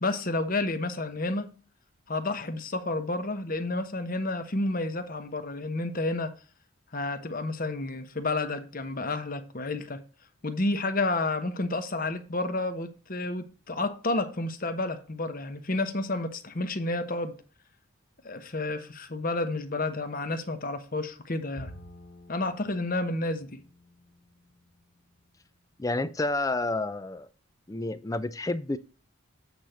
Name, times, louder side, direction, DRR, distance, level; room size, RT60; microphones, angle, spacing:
voice 1, 0.0-1.5 2.1-6.3 6.9-10.0 10.4-17.4 18.2-21.7 22.3-23.6, left 2 dB, 40° left, 1.0 m, -30 dB
Bowed string instrument, 21.6-25.0, equal, 55° left, 2.0 m, -50 dB
voice 2, 25.8-27.3 27.7-28.8, left 2 dB, 15° left, 0.4 m, -29 dB
8.6 x 4.4 x 5.1 m
head